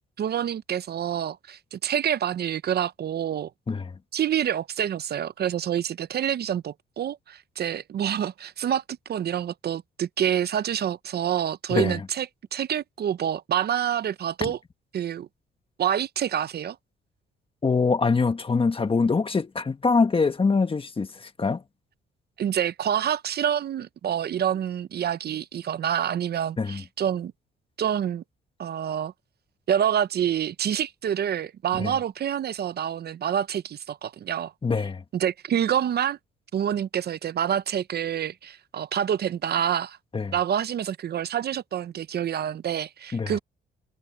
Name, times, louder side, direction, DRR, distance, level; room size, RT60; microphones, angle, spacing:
voice 1, 0.2-3.5 4.1-8.8 9.1-14.6 14.9-15.3 15.8-16.8 22.4-27.3 27.8-28.2 28.6-29.1 29.7-34.5 35.1-36.2 36.5-40.0 40.3-43.4, right 9 dB, 55° right, 0.7 m, -27 dB
voice 2, 11.7-12.0 14.4-14.5 17.6-21.6 26.6-26.8 31.8-31.9 34.6-35.0 40.1-40.3 43.1-43.3, left 4 dB, 25° left, 1.5 m, -24 dB
cardioid pair, 90°, 20 cm